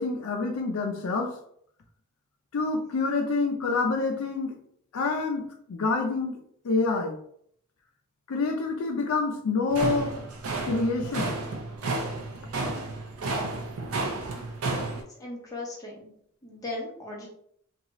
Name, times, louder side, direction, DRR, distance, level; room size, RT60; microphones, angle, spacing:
voice 1, 0.0-1.3 2.5-4.6 4.9-6.4 6.6-7.2 8.3-10.1 10.6-11.3, left 3 dB, 75° left, 4 dB, 0.4 m, -27 dB
sound 1, 9.7-15.0, right 2 dB, 80° right, 0.5 m, -32 dB
voice 2, 15.2-16.1 16.4-17.3, left 2 dB, 15° left, -4 dB, 0.7 m, -37 dB
2.6 x 2.3 x 2.9 m, 0.68 s
head